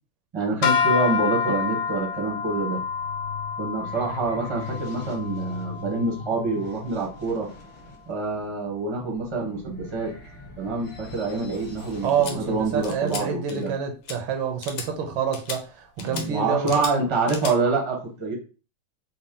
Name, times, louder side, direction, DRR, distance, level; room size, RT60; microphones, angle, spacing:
voice 1, 0.3-2.8 3.6-7.5 8.1-10.1 10.6-13.7 16.0-18.3, right 3 dB, 30° right, 0.5 m, -26 dB
sound 1, 0.6-7.0, left 6 dB, 75° left, 1.3 m, -28 dB
sound 2, 2.6-13.1, left 4 dB, 55° left, 1.7 m, -40 dB
voice 2, 12.0-16.7 17.1-17.2, right 7 dB, 75° right, 1.3 m, -27 dB
sound 3, 12.2-12.3 12.8-13.2 13.5-13.8 14.1-14.2 14.6-14.9 15.3-15.6 16.0-16.3 16.7-16.9 17.3-17.5, left 6 dB, 90° left, 1.6 m, -35 dB
4.1 x 2.1 x 3.7 m
omnidirectional pair, 2.3 m